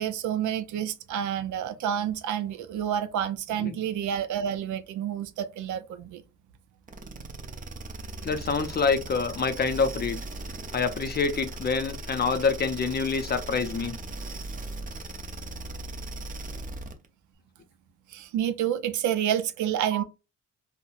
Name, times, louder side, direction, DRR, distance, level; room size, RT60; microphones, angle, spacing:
voice 1, 0.0-6.2 18.1-20.0, right 10 dB, 75° right, 0.5 m, -29 dB
sound 1, 6.9-17.1, right 2 dB, 25° right, 0.6 m, -38 dB
voice 2, 8.2-10.2 10.7-14.0, left 5 dB, 35° left, 0.5 m, -26 dB
3.8 x 2.1 x 2.4 m
cardioid pair, 90°, 30 cm